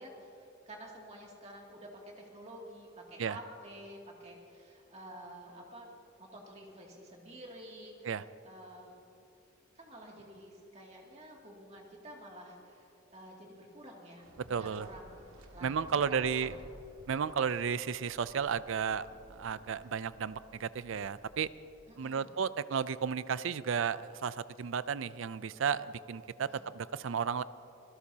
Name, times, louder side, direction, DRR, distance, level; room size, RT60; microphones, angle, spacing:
voice 1, 0.0-5.9 6.2-8.1 8.4-8.9 9.8-15.2 15.5-16.6 21.9-22.4 26.5-26.7, right 1 dB, 30° right, -2 dB, 2.5 m, -50 dB
Waves surf, 14.2-21.8, right 1 dB, 90° right, 1.8 m, -56 dB
voice 2, 14.5-14.9 15.6-16.5 17.1-19.1 19.3-21.5 22.0-26.5 26.7-27.4, right 6 dB, 65° right, 16 dB, 0.4 m, -33 dB
25.5 x 16.5 x 2.8 m, 2.7 s
head